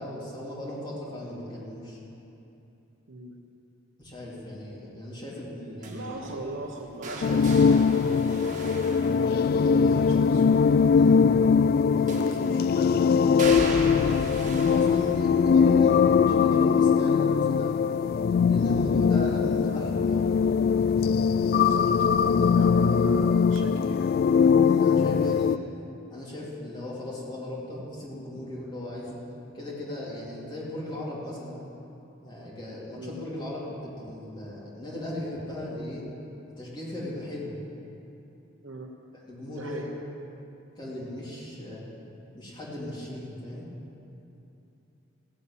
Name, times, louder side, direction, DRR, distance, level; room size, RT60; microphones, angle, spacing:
voice 1, 0.0-2.0 4.0-6.7 8.3-8.7 9.1-10.0 10.9-11.2 11.9-17.8 18.5-20.3 22.6-22.7 24.6-25.6 26.1-29.2 29.5-31.6 32.2-36.0 36.6-37.6 39.1-39.8 40.8-41.9 42.3-43.7, left 1 dB, 25° left, -7 dB, 3.6 m, -38 dB
sound 1, 5.8-9.9 12.1-12.7 13.4-19.2 19.5-20.0 21.2-21.3, right 2 dB, 40° right, 1.9 m, -38 dB
voice 2, 5.8-7.8 9.8-10.4 21.5-24.1 32.9-33.2 38.6-38.9 39.5-39.9, right 2 dB, 75° right, -2 dB, 1.1 m, -40 dB
sound 2, 7.2-25.6, left 6 dB, 50° left, 0.3 m, -21 dB
16.5 x 8.2 x 8.8 m, 2.8 s
head